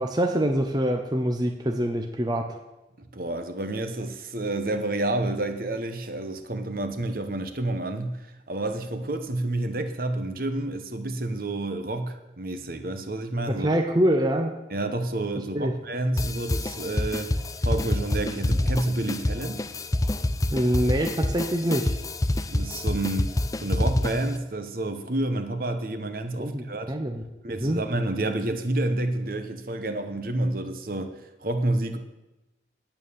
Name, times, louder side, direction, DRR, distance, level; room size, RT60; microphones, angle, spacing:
voice 1, 0.0-2.5 13.5-14.5 15.5-15.7 20.5-22.0 26.4-27.8, right 1 dB, 20° right, 4 dB, 0.7 m, -25 dB
voice 2, 3.0-13.7 14.7-17.4 17.6-19.6 22.5-26.9 27.4-32.0, right 2 dB, 50° right, 8 dB, 1.0 m, -29 dB
sound 1, 16.2-24.4, left 1 dB, 20° left, 0.4 m, -27 dB
9.2 x 9.2 x 7.0 m, 0.99 s
head